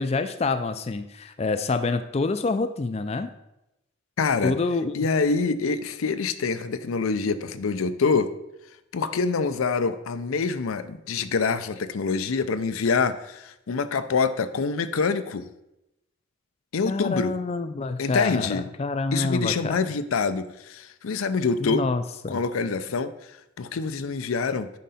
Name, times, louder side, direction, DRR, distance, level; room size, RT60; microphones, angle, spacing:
voice 1, 0.0-3.3 4.4-5.1 16.9-19.8 21.6-22.4, left 3 dB, 30° left, 9 dB, 0.3 m, -27 dB
voice 2, 4.2-4.6 4.9-8.3 8.9-15.4 16.7-17.4 18.0-18.7 19.1-21.8 22.3-24.7, left 4 dB, 85° left, 11 dB, 0.5 m, -26 dB
9.2 x 5.2 x 4.2 m, 0.89 s
head